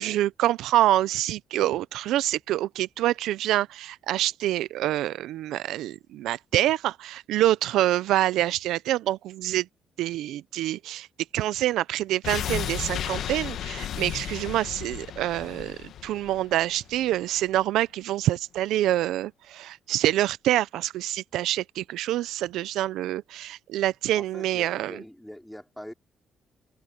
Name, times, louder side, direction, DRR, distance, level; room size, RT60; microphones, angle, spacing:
voice 1, 0.0-9.7 10.0-11.1 11.3-25.0, right 14 dB, 85° right, 0.5 m, -26 dB
sound 1, 12.2-17.2 17.5-17.6, left 10 dB, 75° left, 1.2 m, -34 dB
voice 2, 24.1-25.9, equal, 5° left, 4.4 m, -43 dB
open air
cardioid pair, 90°, 0 cm